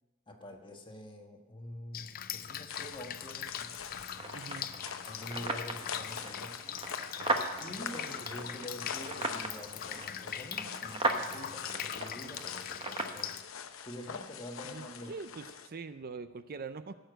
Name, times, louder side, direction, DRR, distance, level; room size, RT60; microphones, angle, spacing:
voice 1, 0.3-3.7 5.0-6.6 7.6-13.4 13.8-15.3, left 1 dB, 25° left, 3 dB, 1.4 m, -46 dB
Drip, 1.9-13.4, left 9 dB, 45° left, 0.5 m, -42 dB
sound 1, 2.7-15.7, left 7 dB, 75° left, 0.8 m, -44 dB
sound 2, 4.1-13.2, right 2 dB, 25° right, 1.1 m, -38 dB
voice 2, 4.3-4.7 14.6-16.9, right 4 dB, 50° right, 12 dB, 0.5 m, -43 dB
16.0 x 6.6 x 7.9 m, 1.2 s
head